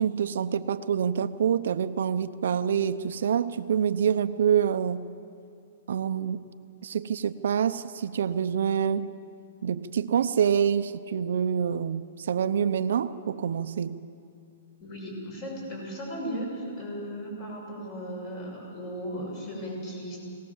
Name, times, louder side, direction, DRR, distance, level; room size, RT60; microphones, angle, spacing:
voice 1, 0.0-5.1 5.9-6.4 6.8-9.1 9.6-14.0, right 8 dB, 75° right, 10 dB, 0.7 m, -26 dB
voice 2, 14.8-20.2, equal, 35° left, -1 dB, 6.7 m, -36 dB
22.0 x 18.0 x 7.3 m, 2.4 s
hypercardioid pair, 165°, 0 cm